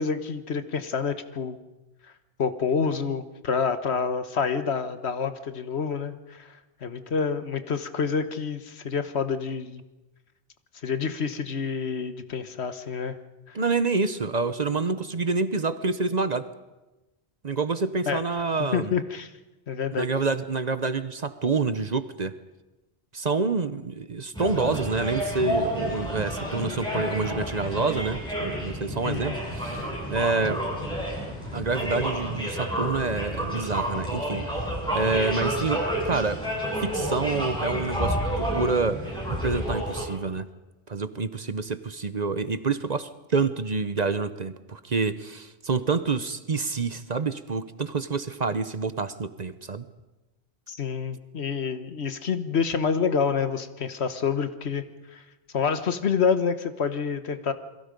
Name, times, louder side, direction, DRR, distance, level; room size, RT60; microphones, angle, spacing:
voice 1, 0.0-1.6 2.4-9.8 10.8-13.2 13.5-13.6 18.1-18.2 18.7-19.3 19.7-20.1 29.0-29.4 50.7-54.8 55.1-55.2 55.5-57.5, left 6 dB, 75° left, 10 dB, 1.5 m, -28 dB
voice 2, 13.5-16.5 17.4-18.9 20.0-22.3 23.1-29.8 30.1-30.6 31.5-36.4 36.8-39.0 39.4-40.5 40.9-49.9, right 4 dB, 40° right, 13 dB, 0.9 m, -27 dB
sound 1, 24.3-40.0, equal, 5° left, 7.9 m, -30 dB
28.5 x 22.0 x 5.2 m, 1.1 s
omnidirectional pair, 1.1 m